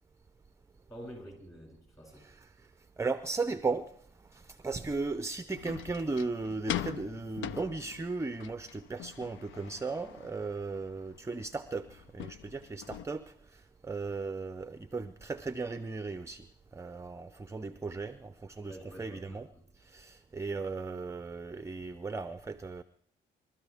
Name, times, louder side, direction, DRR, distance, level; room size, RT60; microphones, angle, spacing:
voice 1, 0.9-2.3 18.7-19.6, equal, 15° left, 7.4 m, -48 dB
voice 2, 2.1-2.7 3.0-3.9 4.3-16.5 16.7-19.5 19.8-22.8, right 3 dB, 15° right, 0.5 m, -36 dB
sound 1, 5.5-13.0, left 11 dB, 75° left, 0.5 m, -42 dB
24.0 x 13.0 x 3.5 m
cardioid pair, 90°, 20 cm